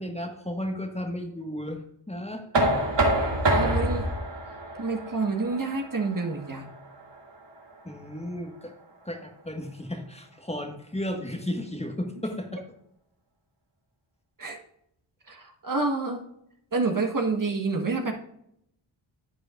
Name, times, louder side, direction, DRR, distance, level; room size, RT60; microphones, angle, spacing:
voice 1, 0.0-2.5 7.8-8.8 9.0-12.6, left 1 dB, 15° left, 4 dB, 1.6 m, -34 dB
Knock, 2.5-8.3, right 1 dB, 60° right, 2.4 m, -27 dB
voice 2, 3.5-4.1 4.8-6.7 14.4-14.6 15.3-16.2 16.7-18.1, right 3 dB, 40° right, 3 dB, 1.5 m, -28 dB
10.5 x 7.9 x 2.5 m, 0.75 s
cardioid pair, 70°, 49 cm